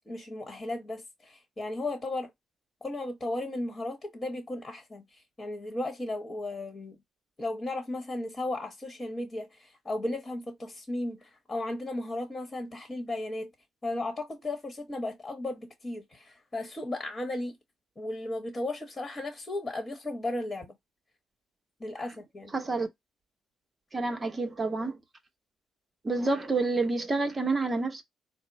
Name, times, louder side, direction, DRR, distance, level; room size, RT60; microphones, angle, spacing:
voice 1, 0.1-2.3 2.8-7.0 7.4-13.5 13.8-17.6 18.0-20.7 21.8-22.5, left 1 dB, 25° left, 1.2 m, -35 dB
voice 2, 22.5-22.9 23.9-25.0 26.0-28.0, right 3 dB, 25° right, 1.0 m, -28 dB
4.3 x 2.1 x 3.9 m
cardioid pair, 90°, 0 cm